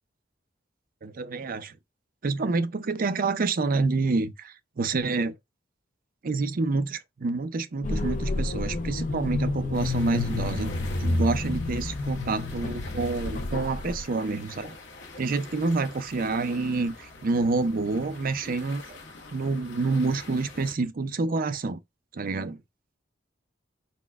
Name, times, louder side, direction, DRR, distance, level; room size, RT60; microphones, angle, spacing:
voice 1, 1.0-1.7 2.2-5.3 6.2-10.7 11.0-14.8 15.2-19.0 19.3-21.8 22.1-22.6, right 3 dB, 50° right, 0.5 m, -28 dB
sound 1, 7.8-14.0, left 2 dB, 45° left, 0.5 m, -29 dB
sound 2, 9.7-20.8, left 3 dB, 75° left, 1.2 m, -45 dB
4.1 x 2.2 x 4.6 m
head